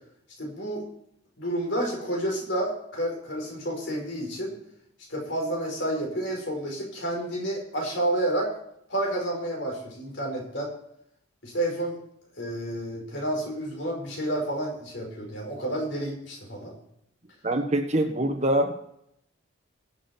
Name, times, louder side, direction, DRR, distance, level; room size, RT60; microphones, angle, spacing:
voice 1, 0.4-0.8 1.4-4.5 5.1-8.5 8.9-10.7 11.4-12.0 12.4-16.7, right 1 dB, 60° left, 0 dB, 5.1 m, -30 dB
voice 2, 17.4-18.7, right 1 dB, 30° right, 5 dB, 1.4 m, -24 dB
22.5 x 7.5 x 4.5 m, 0.74 s
head